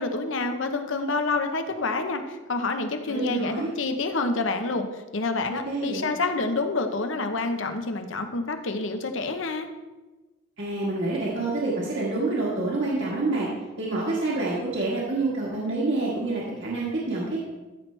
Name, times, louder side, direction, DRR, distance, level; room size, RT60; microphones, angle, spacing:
voice 1, 0.0-9.7, left 3 dB, 70° left, 6 dB, 0.9 m, -28 dB
voice 2, 3.1-3.7 5.6-6.1 10.6-13.5 13.8-17.4, right 2 dB, 60° right, -6 dB, 1.6 m, -27 dB
13.5 x 6.1 x 3.3 m, 1.2 s
head